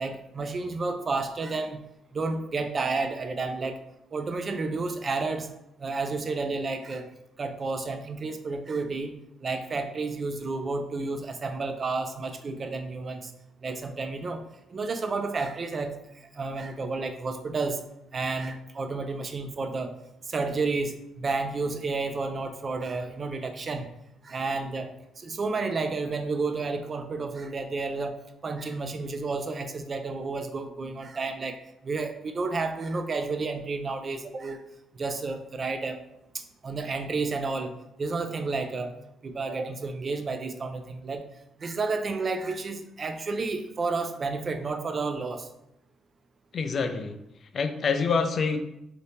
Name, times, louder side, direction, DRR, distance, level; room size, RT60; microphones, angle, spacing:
voice 1, 0.0-1.8 2.1-3.8 4.1-5.5 5.8-7.1 7.4-9.2 9.4-13.3 13.6-14.4 14.7-17.8 18.1-19.9 20.3-23.9 24.2-34.6 34.9-36.0 36.3-38.9 39.2-41.3 41.6-45.5, right 3 dB, 40° right, 7 dB, 0.4 m, -31 dB
voice 2, 46.5-47.2 47.5-48.6, left 5 dB, 50° left, 8 dB, 0.4 m, -26 dB
2.8 x 2.6 x 3.4 m, 0.83 s
cardioid pair, 90°, 0 cm